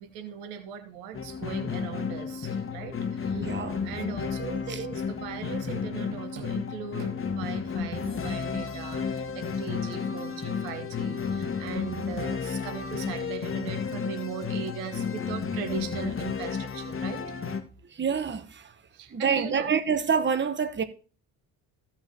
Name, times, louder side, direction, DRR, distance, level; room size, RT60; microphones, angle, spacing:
voice 1, 0.0-3.5 3.8-17.2 18.9-19.7, right 8 dB, 80° right, 1.4 m, -39 dB
sound 1, 1.1-17.6, left 6 dB, 30° left, 1.6 m, -32 dB
voice 2, 3.3-3.8 4.7-4.8 17.9-18.7 19.1-20.8, right 6 dB, 30° right, 1.2 m, -27 dB
15.5 x 5.8 x 3.0 m
hypercardioid pair, 60°, 40 cm